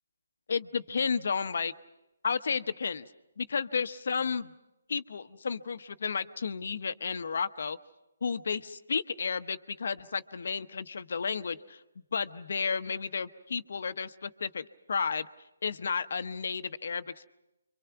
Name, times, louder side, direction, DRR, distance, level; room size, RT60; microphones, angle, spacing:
voice 1, 0.5-1.7 2.2-3.1 3.4-4.5 4.9-7.8 8.2-11.8 12.1-15.3 15.6-17.3, left 5 dB, 60° left, 12 dB, 0.9 m, -32 dB
27.5 x 24.5 x 5.9 m, 0.97 s
figure-of-eight pair, 150°, 0 cm